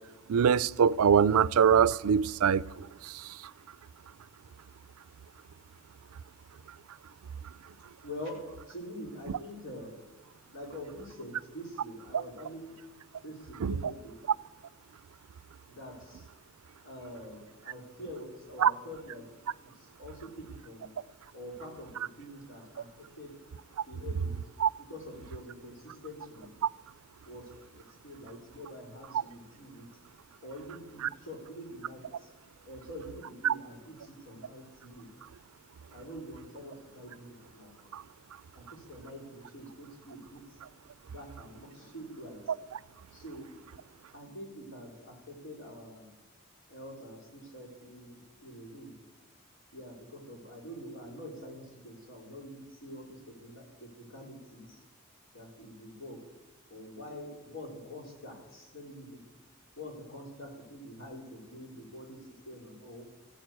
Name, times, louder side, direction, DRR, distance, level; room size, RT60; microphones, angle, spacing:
voice 1, 0.3-2.6 13.6-13.8 18.6-18.7 24.6-24.7 33.4-33.5 37.9-38.0, right 7 dB, 85° right, 0.4 m, -23 dB
voice 2, 8.0-8.4 8.7-10.0 10.5-12.8 13.2-14.1 15.7-16.3 16.8-19.3 19.6-20.9 21.3-23.3 23.9-24.4 24.9-26.5 27.2-29.9 30.4-32.3 32.7-35.1 35.9-37.7 38.5-40.6 41.1-42.4 43.1-43.6 44.1-46.1 46.7-49.0 49.7-54.8 55.3-56.2 56.7-59.2 59.8-63.1, equal, 60° left, 4.2 m, -45 dB
14.5 x 9.2 x 8.1 m
head